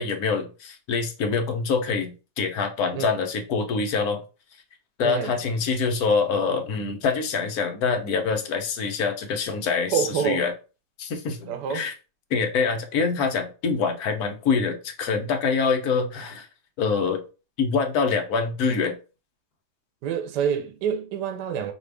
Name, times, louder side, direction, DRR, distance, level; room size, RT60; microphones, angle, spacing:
voice 1, 0.0-4.2 5.0-10.5 11.0-11.9 12.3-16.5 16.8-17.2 17.6-19.0, left 5 dB, 65° left, 1.2 m, -25 dB
voice 2, 5.0-5.3 9.9-10.4 11.5-11.9 20.0-21.7, right 7 dB, 80° right, 1.2 m, -27 dB
5.0 x 2.4 x 3.3 m
omnidirectional pair, 1.8 m